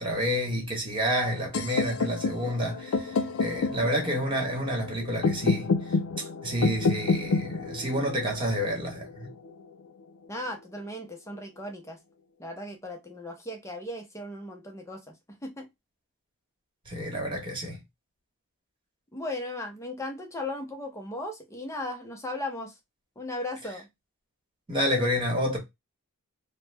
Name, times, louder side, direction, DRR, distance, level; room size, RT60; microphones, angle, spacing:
voice 1, 0.0-6.0 6.4-9.3 16.9-17.8 24.7-25.6, equal, 25° right, 1.1 m, -29 dB
sound 1, 1.5-9.5, left 4 dB, 75° left, 0.5 m, -29 dB
voice 2, 10.3-12.0 12.4-15.7 19.1-22.8 23.2-23.9, left 1 dB, 15° left, 0.6 m, -37 dB
3.0 x 2.1 x 3.2 m
head